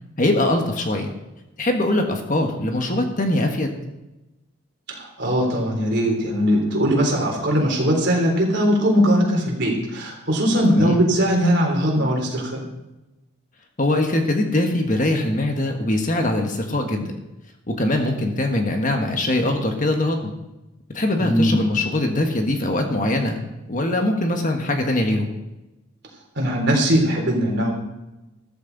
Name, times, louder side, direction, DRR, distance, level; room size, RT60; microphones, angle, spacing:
voice 1, 0.2-1.1 1.6-3.7 10.7-11.0 13.8-17.1 17.7-20.3 20.9-23.4 23.7-25.3, left 1 dB, 40° left, 3 dB, 1.5 m, -22 dB
voice 2, 4.9-12.6 21.2-21.6 26.4-27.7, equal, 55° right, 0 dB, 3.6 m, -20 dB
14.5 x 14.0 x 4.1 m, 1.0 s
head